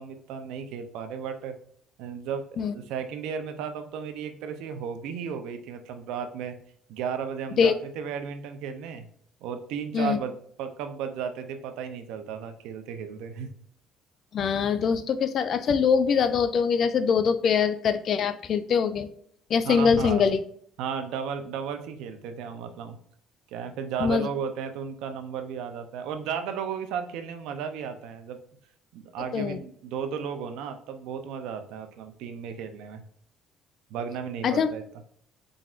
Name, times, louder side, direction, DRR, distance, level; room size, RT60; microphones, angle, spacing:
voice 1, 0.0-1.5 2.0-6.5 6.9-9.0 9.4-10.3 10.6-13.5 19.6-20.2 20.8-23.0 23.5-28.4 28.9-33.0 33.9-34.8, right 7 dB, 80° right, 8 dB, 0.6 m, -34 dB
voice 2, 14.3-19.1 19.5-20.4 24.0-24.3 29.3-29.6 34.4-34.7, left 6 dB, 50° left, 12 dB, 0.4 m, -23 dB
4.4 x 3.9 x 2.4 m, 0.64 s
cardioid pair, 105°, 0 cm